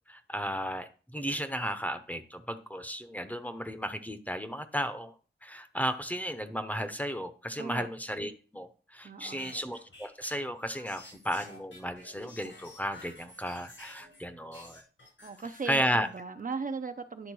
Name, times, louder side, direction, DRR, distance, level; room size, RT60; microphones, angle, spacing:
voice 1, 0.1-5.1 5.4-14.8 15.7-16.1, equal, 10° left, 0.8 m, -34 dB
voice 2, 9.0-9.6 15.2-17.3, right 4 dB, 45° right, 0.7 m, -38 dB
sound 1, 9.2-14.2 14.5-16.2, left 2 dB, 85° left, 5.5 m, -51 dB
10.0 x 3.8 x 6.1 m
wide cardioid pair, 90°, 19 cm